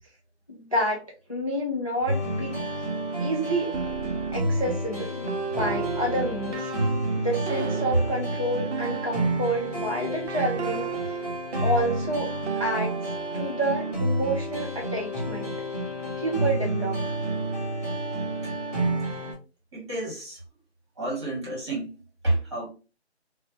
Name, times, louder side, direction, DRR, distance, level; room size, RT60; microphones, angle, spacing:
voice 1, 0.5-1.0 1.3-2.6 3.2-3.7 4.3-6.7 7.2-10.9 11.6-13.0 13.3-15.5 16.2-17.0, right 1 dB, 30° left, 0.4 m, -29 dB
sound 1, 2.1-19.3, right 1 dB, 10° right, 1.4 m, -29 dB
sound 2, 3.7-9.7 10.3-13.5, right 7 dB, 75° right, 0.6 m, -35 dB
voice 2, 19.7-20.4 21.0-22.0 22.2-22.7, right 2 dB, 25° right, 1.1 m, -29 dB
3.0 x 2.1 x 2.8 m
figure-of-eight pair, 160°, 34 cm